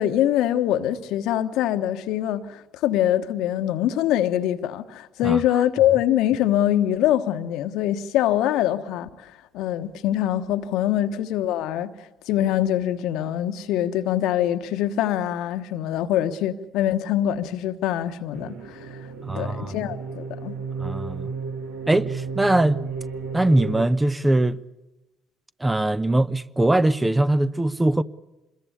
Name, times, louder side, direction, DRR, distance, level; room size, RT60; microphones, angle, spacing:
voice 1, 0.0-11.9 12.3-18.9 19.3-20.6, left 12 dB, 65° left, 1.2 m, -24 dB
sound 1, 18.3-23.8, right 5 dB, 75° right, 1.9 m, -33 dB
voice 2, 19.2-19.8 20.8-21.3 21.9-22.8 23.3-24.6 25.6-28.0, right 1 dB, 15° right, 0.8 m, -21 dB
26.0 x 21.5 x 8.3 m
hypercardioid pair, 50°, 0 cm